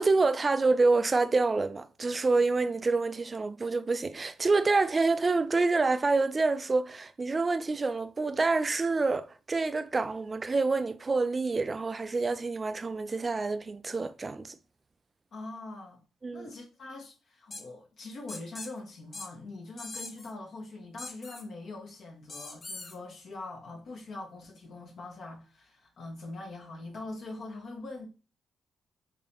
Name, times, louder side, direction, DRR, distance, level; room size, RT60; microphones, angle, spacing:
voice 1, 0.0-14.6 16.2-16.5, right 3 dB, 30° right, 0.3 m, -27 dB
voice 2, 15.3-16.0 16.3-28.1, left 2 dB, 60° left, 0.9 m, -43 dB
sound 1, 17.5-17.6 18.3-18.7 19.1-19.3 19.8-20.3 21.0-21.4 22.3-23.0, left 3 dB, 35° left, 0.7 m, -41 dB
3.7 x 3.2 x 2.9 m
cardioid pair, 85°, 0 cm